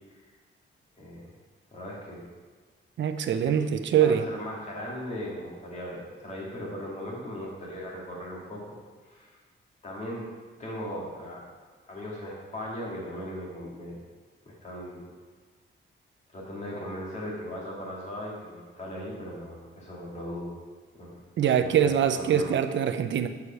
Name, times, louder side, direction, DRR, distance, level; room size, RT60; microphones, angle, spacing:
voice 1, 1.0-1.3 1.7-2.3 3.4-3.6 4.0-8.6 9.0-9.4 9.8-10.2 10.6-11.4 11.8-14.0 14.5-15.1 16.3-20.5 20.9-21.3 21.6-22.5, equal, 35° left, -3 dB, 2.0 m, -38 dB
voice 2, 3.0-4.2 21.4-23.3, right 8 dB, 65° right, 9 dB, 0.6 m, -23 dB
8.2 x 4.8 x 5.6 m, 1.5 s
wide cardioid pair, 160°, 21 cm